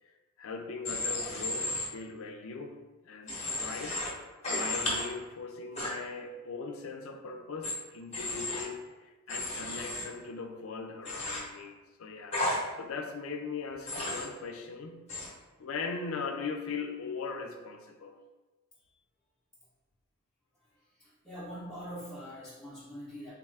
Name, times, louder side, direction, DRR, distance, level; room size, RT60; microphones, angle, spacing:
voice 1, 0.4-2.8 3.0-15.1 15.6-18.2, left 4 dB, 75° left, 5 dB, 0.4 m, -40 dB
Human voice / Train, 0.8-1.8 3.3-4.1 4.4-5.0 5.8-5.9 7.6-7.7 8.1-8.6 9.3-10.0 11.0-11.4 12.3-12.6 13.9-14.2 15.1-15.3, left 2 dB, 30° left, 0.8 m, -33 dB
voice 2, 21.0-23.3, equal, ahead, -13 dB, 0.7 m, -43 dB
3.4 x 2.3 x 3.2 m, 1.2 s
head